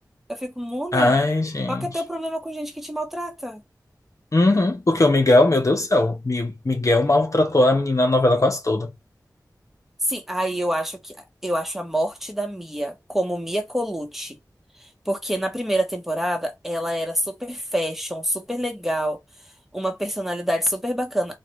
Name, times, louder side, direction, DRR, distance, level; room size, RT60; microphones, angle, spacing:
voice 1, 0.3-1.2 1.7-3.6 10.1-11.2 11.4-14.4 15.1-19.2 19.7-21.4, equal, 5° right, 1.1 m, -27 dB
voice 2, 0.9-1.9 4.3-8.9, left 2 dB, 50° left, 0.9 m, -19 dB
4.0 x 2.4 x 3.2 m
wide cardioid pair, 70°, 7 cm